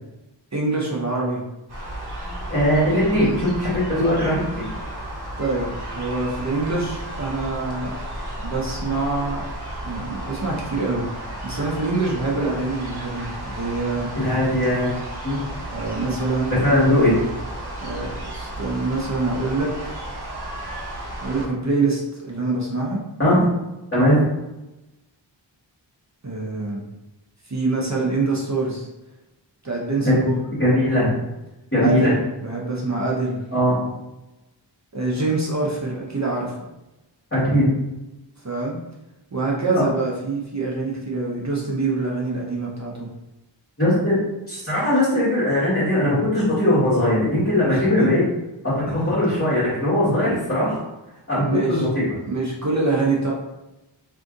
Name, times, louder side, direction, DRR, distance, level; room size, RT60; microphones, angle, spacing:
voice 1, 0.5-1.5 5.4-8.0 8.4-9.4 9.8-14.1 15.7-16.7 17.8-20.0 21.2-23.0 26.2-26.8 27.5-28.9 29.6-30.3 31.8-33.5 34.9-36.7 38.4-38.8 39.3-43.1 47.7-48.1 48.9-49.1 51.4-51.9 52.2-53.3, right 3 dB, 40° right, -3 dB, 0.7 m, -25 dB
sound 1, 1.7-21.5, right 1 dB, 60° right, 1.0 m, -33 dB
voice 2, 2.5-4.7 14.2-14.9 15.2-15.4 16.5-17.2 23.2-23.4 23.9-24.2 30.0-31.2 31.7-32.1 33.5-33.7 37.3-37.7 39.7-39.8 43.8-44.2 44.5-48.2 48.9-50.8 51.3-52.0, left 1 dB, 25° left, -11 dB, 1.3 m, -20 dB
2.6 x 2.5 x 3.6 m, 0.98 s
wide cardioid pair, 50°, 45 cm